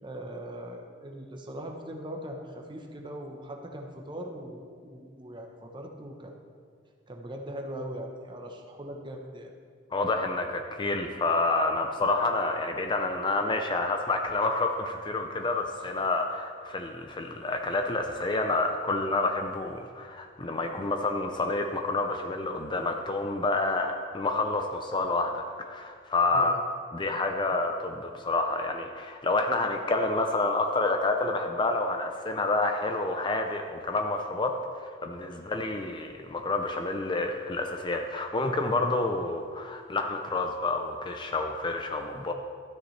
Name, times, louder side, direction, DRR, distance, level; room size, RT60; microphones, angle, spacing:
voice 1, 0.0-6.4 7.1-9.5 15.8-15.9 26.3-26.7 42.1-42.3, right 1 dB, 25° right, 2 dB, 0.9 m, -40 dB
voice 2, 9.9-26.6 26.9-42.3, left 2 dB, 25° left, 4 dB, 0.5 m, -28 dB
13.0 x 9.3 x 3.3 m, 2.1 s
head